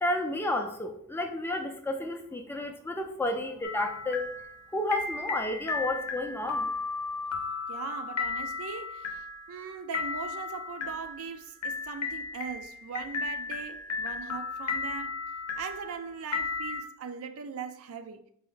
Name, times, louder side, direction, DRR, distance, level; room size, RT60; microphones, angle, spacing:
voice 1, 0.0-4.3 4.7-6.7, left 1 dB, 10° left, 0.4 m, -31 dB
sound 1, 3.6-16.8, left 4 dB, 85° left, 0.7 m, -35 dB
voice 2, 7.7-15.2 15.6-18.2, right 6 dB, 65° right, 0.4 m, -40 dB
4.4 x 2.5 x 3.7 m
head